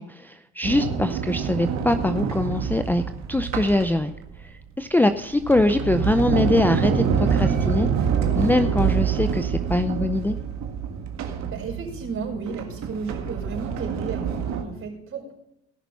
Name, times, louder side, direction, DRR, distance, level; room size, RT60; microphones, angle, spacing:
voice 1, 0.0-3.0 3.3-4.1 4.8-7.9 8.3-10.4, left 1 dB, 5° left, 8 dB, 0.5 m, -23 dB
Sliding door, 0.6-4.4 5.1-14.6, right 7 dB, 65° right, 1.8 m, -26 dB
voice 2, 11.5-15.3, right 5 dB, 45° right, -1 dB, 5.0 m, -33 dB
18.0 x 6.0 x 5.6 m, 0.80 s
supercardioid pair, 80°, 30 cm